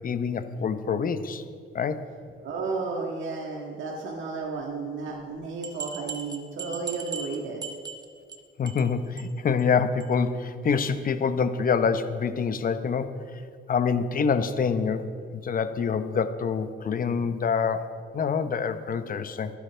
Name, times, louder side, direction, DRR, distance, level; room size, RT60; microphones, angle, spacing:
voice 1, 0.0-1.4 1.7-2.0 8.6-13.1 13.7-17.8 18.1-19.5, left 6 dB, 45° left, 10 dB, 0.9 m, -26 dB
voice 2, 2.4-7.6, right 4 dB, 75° right, -1 dB, 1.7 m, -33 dB
sound 1, 5.6-8.4 8.7-8.9 9.2-9.3 9.6-9.7 10.0-10.1, right 5 dB, 20° right, 1.3 m, -38 dB
24.5 x 9.8 x 3.4 m, 2.2 s
cardioid pair, 90°, 20 cm